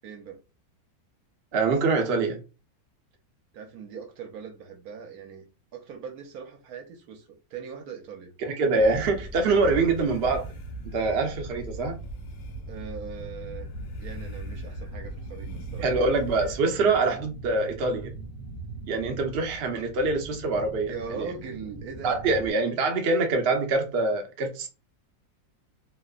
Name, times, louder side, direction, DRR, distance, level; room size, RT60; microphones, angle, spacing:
voice 1, 0.0-0.4 3.5-5.4 5.7-8.3 12.7-13.7 14.0-15.9 20.9-22.2, right 6 dB, 70° right, 1.0 m, -40 dB
voice 2, 1.5-2.4 8.4-10.5 10.9-11.9 15.8-18.1 18.9-21.3 22.0-24.7, right 3 dB, 85° right, 0.5 m, -25 dB
sound 1, 8.8-16.6, right 1 dB, 90° left, 1.4 m, -39 dB
sound 2, 9.7-22.5, right 3 dB, 65° left, 0.5 m, -42 dB
2.9 x 2.1 x 2.3 m
omnidirectional pair, 2.0 m